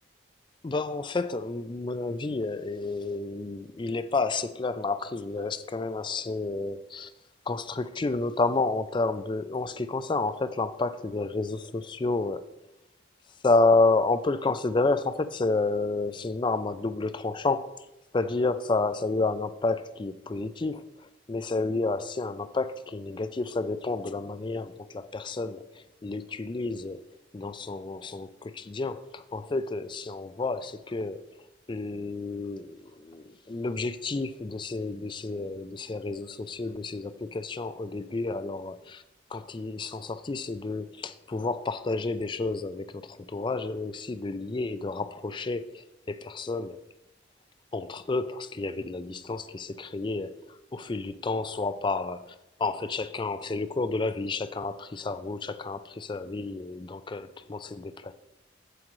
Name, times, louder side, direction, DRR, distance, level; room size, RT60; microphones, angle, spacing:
voice 1, 0.6-7.1 7.5-12.6 13.4-17.9 18.1-27.0 27.3-39.0 39.3-46.8 47.7-58.1, left 3 dB, 25° left, 0.3 m, -30 dB
14.5 x 5.0 x 3.1 m
head